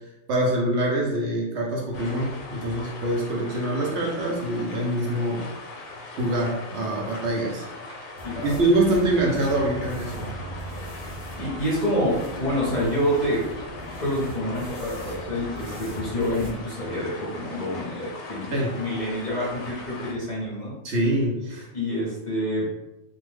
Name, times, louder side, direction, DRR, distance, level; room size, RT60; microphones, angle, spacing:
voice 1, 0.3-5.5 6.2-7.7 8.4-10.3 18.5-18.8 20.8-21.7, right 1 dB, 65° right, -2 dB, 0.9 m, -24 dB
sound 1, 1.9-20.1, left 2 dB, 75° left, 0.9 m, -40 dB
voice 2, 8.2-8.6 11.3-13.4 13.8-20.7 21.7-22.7, equal, 40° left, -6 dB, 0.7 m, -27 dB
sound 2, 8.2-16.6, right 1 dB, 35° right, 0.6 m, -39 dB
2.6 x 2.1 x 3.2 m, 0.96 s
omnidirectional pair, 1.3 m